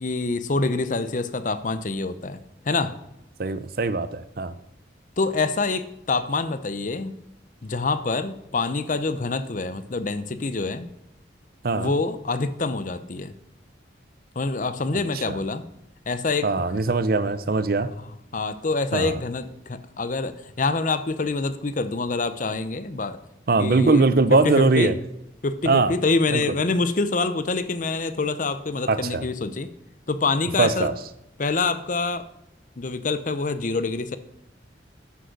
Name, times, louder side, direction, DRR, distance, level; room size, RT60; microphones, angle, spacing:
voice 1, 0.0-2.9 5.2-7.2 7.6-10.9 11.8-13.3 14.4-15.7 16.1-16.5 18.3-23.2 23.6-24.0 24.3-24.9 25.4-29.7 30.1-30.9 31.4-32.3 32.8-34.2, left 3 dB, 45° left, 12 dB, 0.6 m, -26 dB
voice 2, 3.4-4.5 11.6-11.9 15.3-15.4 16.4-17.9 18.9-19.2 23.5-24.9 25.6-25.9 26.3-26.4 28.9-29.2 30.6-30.9, right 3 dB, 50° right, 14 dB, 0.6 m, -21 dB
9.4 x 6.4 x 6.5 m, 0.86 s
head